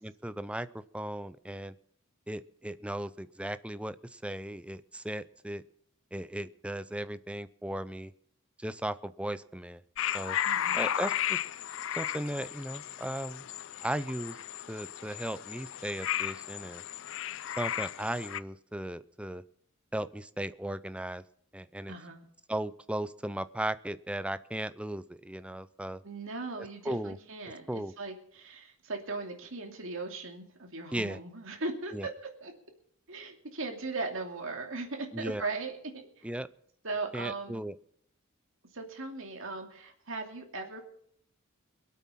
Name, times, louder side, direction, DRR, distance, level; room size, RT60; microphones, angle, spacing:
voice 1, 0.0-1.7 2.3-5.6 6.1-8.1 8.6-9.8 10.1-10.4 10.7-11.4 12.0-13.4 13.8-14.4 14.7-16.8 17.6-19.4 19.9-21.2 21.5-22.0 22.5-26.0 26.6-27.2 27.7-27.9 30.9-31.2 31.9-32.1 35.1-35.4 36.2-36.5 37.1-37.7, right 1 dB, 5° right, 14 dB, 0.5 m, -36 dB
sound 1, 10.0-18.4, left 11 dB, 65° left, 0.5 m, -34 dB
voice 2, 10.4-10.9 21.9-22.2 26.0-32.1 32.4-32.5 33.1-36.4 36.8-37.7 38.7-40.8, right 3 dB, 65° right, 3 dB, 2.7 m, -38 dB
22.5 x 8.5 x 5.8 m, 0.65 s
head